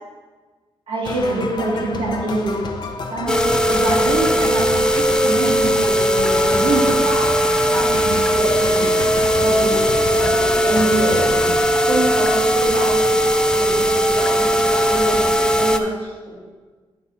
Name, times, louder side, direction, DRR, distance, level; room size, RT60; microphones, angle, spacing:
voice 1, 0.9-2.7 3.1-7.4 7.7-8.9 9.4-11.4 11.9-16.3, right 2 dB, 75° right, -5 dB, 2.3 m, -25 dB
sound 1, 1.0-11.6, left 3 dB, 50° left, 0.8 m, -30 dB
sound 2, 3.3-15.8, equal, 10° left, 0.4 m, -18 dB
9.7 x 3.7 x 5.6 m, 1.4 s
cardioid pair, 100°, 9 cm